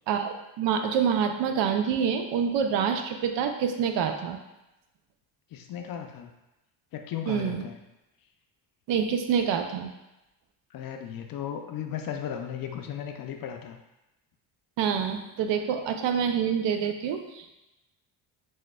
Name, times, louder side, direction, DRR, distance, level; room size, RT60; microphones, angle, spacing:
voice 1, 0.1-4.4 7.3-7.7 8.9-9.9 14.8-17.6, right 7 dB, 80° right, 6 dB, 0.6 m, -27 dB
voice 2, 5.5-6.3 6.9-7.8 10.7-13.8, left 9 dB, 55° left, 4 dB, 0.5 m, -36 dB
6.1 x 2.2 x 2.2 m, 0.96 s
cardioid pair, 105°, 43 cm